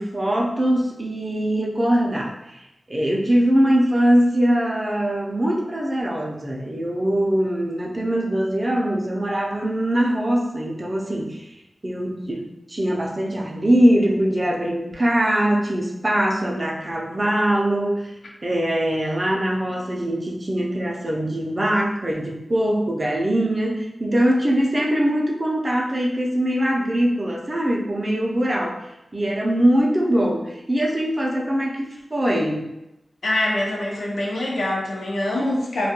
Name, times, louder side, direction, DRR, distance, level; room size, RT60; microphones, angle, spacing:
voice 1, 0.0-2.6 2.9-11.5 11.8-18.2 18.4-28.8 29.1-32.7, right 1 dB, 30° right, -1 dB, 0.4 m, -22 dB
voice 2, 33.2-35.9, left 1 dB, 85° left, -3 dB, 0.5 m, -24 dB
2.2 x 2.1 x 2.8 m, 0.91 s
wide cardioid pair, 80°, 0 cm